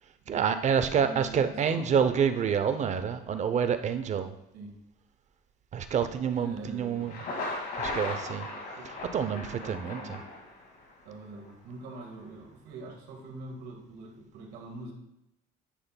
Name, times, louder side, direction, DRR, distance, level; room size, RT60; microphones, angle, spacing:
voice 1, 0.3-4.3 5.7-7.2 7.7-8.5 9.1-10.2, right 7 dB, 45° right, 10 dB, 0.6 m, -28 dB
voice 2, 1.0-2.0 4.5-4.7 6.3-7.2 8.7-8.9 9.3-10.3 11.0-14.9, right 3 dB, 90° right, 2 dB, 1.6 m, -44 dB
Thunder, 6.9-10.9, left 2 dB, 60° left, 2.1 m, -37 dB
10.0 x 5.7 x 2.2 m, 0.84 s
cardioid pair, 110°, 17 cm